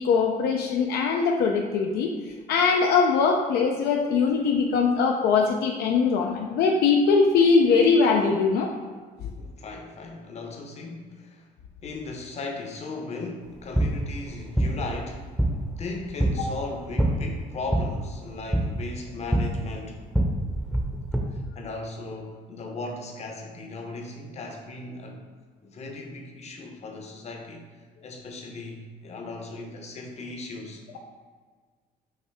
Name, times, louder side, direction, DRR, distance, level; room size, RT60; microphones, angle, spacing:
voice 1, 0.0-2.1 2.5-8.7 9.2-9.3 16.4-16.5, left 5 dB, 70° left, 1 dB, 0.5 m, -21 dB
voice 2, 9.3-11.5 11.8-15.3 15.6-20.0 21.3-25.3 25.6-27.7 28.0-31.0, left 2 dB, 40° left, 2 dB, 0.8 m, -37 dB
sound 1, 13.4-21.2, right 1 dB, 5° right, 0.7 m, -27 dB
5.6 x 2.7 x 3.4 m, 1.5 s
cardioid pair, 110°, 17 cm